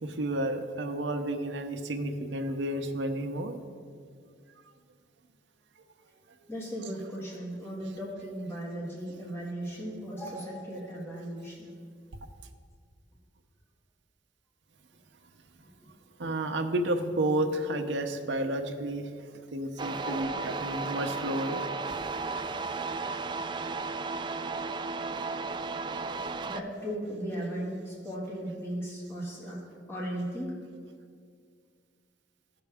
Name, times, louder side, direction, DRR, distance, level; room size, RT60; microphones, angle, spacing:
voice 1, 0.0-3.5 6.4-6.5 16.2-21.6, right 1 dB, 75° right, 6 dB, 0.7 m, -31 dB
voice 2, 6.5-11.7 15.8-15.9 20.0-20.5 26.5-29.6 29.9-30.6, right 1 dB, 15° left, -5 dB, 1.7 m, -37 dB
sound 1, 19.8-26.6, right 4 dB, 25° right, 0.3 m, -34 dB
15.0 x 6.0 x 3.5 m, 2.1 s
head